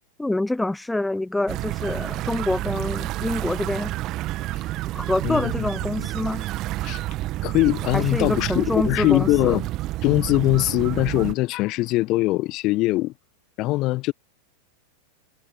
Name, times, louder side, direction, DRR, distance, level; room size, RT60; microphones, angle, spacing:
voice 1, 0.2-3.9 4.9-6.4 7.9-9.6, left 2 dB, 5° left, 0.9 m, -26 dB
sound 1, 1.5-11.3, right 17 dB, 35° right, 2.1 m, -29 dB
voice 2, 5.2-5.7 6.0-6.1 6.8-7.0 7.4-9.7 10.0-13.1 13.6-14.1, left 19 dB, 40° left, 1.6 m, -22 dB
figure-of-eight pair, 90°, 0 cm